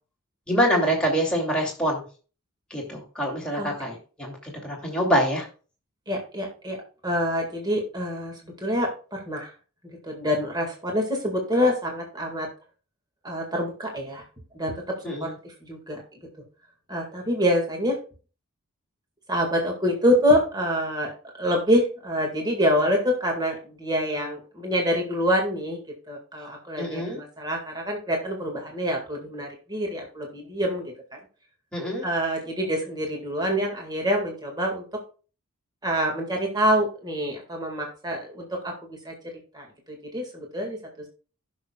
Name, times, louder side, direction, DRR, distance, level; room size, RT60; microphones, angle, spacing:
voice 1, 0.5-2.0 2.7-5.4 15.0-15.3 26.8-27.2 31.7-32.1, equal, 5° left, -3 dB, 2.7 m, -25 dB
voice 2, 6.1-6.8 7.0-9.5 9.8-12.5 13.2-14.2 14.5-16.0 16.9-18.0 19.3-21.1 21.4-31.2 32.0-34.8 35.8-39.1 39.5-40.8, equal, 20° right, 1 dB, 2.0 m, -26 dB
15.5 x 6.3 x 2.3 m, 0.36 s
head